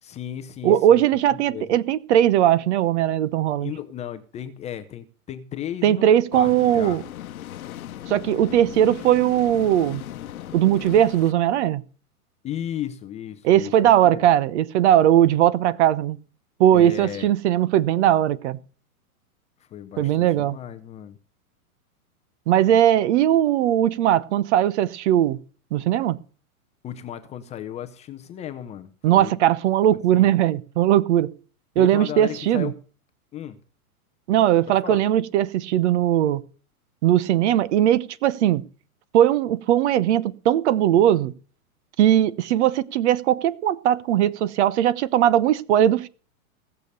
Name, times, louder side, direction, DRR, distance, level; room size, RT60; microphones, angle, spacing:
voice 1, 0.0-1.0 1.5-1.7 3.6-6.1 6.3-7.0 12.4-14.3 16.7-17.3 19.6-21.2 26.8-29.4 29.9-30.3 31.8-32.8 33.3-33.6 34.7-35.0, left 10 dB, 15° left, 0.6 m, -35 dB
voice 2, 0.6-3.7 5.8-7.0 8.1-10.0 10.5-11.8 13.4-16.2 16.6-18.6 20.0-20.6 22.5-25.4 25.7-26.2 29.0-31.3 31.8-32.7 34.3-36.4 37.0-38.6 39.1-41.3 42.0-46.1, right 11 dB, 50° right, 0.9 m, -19 dB
sound 1, 6.3-11.3, left 12 dB, 75° left, 1.1 m, -37 dB
17.5 x 7.0 x 6.7 m
hypercardioid pair, 135°, 44 cm